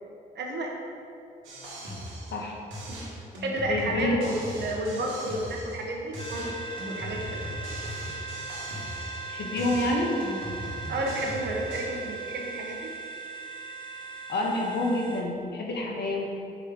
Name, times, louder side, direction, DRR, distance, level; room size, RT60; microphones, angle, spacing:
voice 1, 0.3-0.7 2.9-3.0 3.4-6.5 6.8-7.4 10.9-12.9, right 1 dB, 60° right, 0 dB, 1.4 m, -31 dB
sound 1, 1.4-2.5 2.7-5.9 6.1-9.3 9.6-12.0, equal, 85° right, 1.7 m, -39 dB
voice 2, 3.6-4.3 9.3-10.1 14.3-16.2, left 1 dB, 60° left, -1 dB, 1.5 m, -28 dB
sound 2, 6.2-15.2, right 4 dB, 25° left, 1.1 m, -39 dB
5.0 x 4.8 x 6.2 m, 2.7 s
supercardioid pair, 60°, 20 cm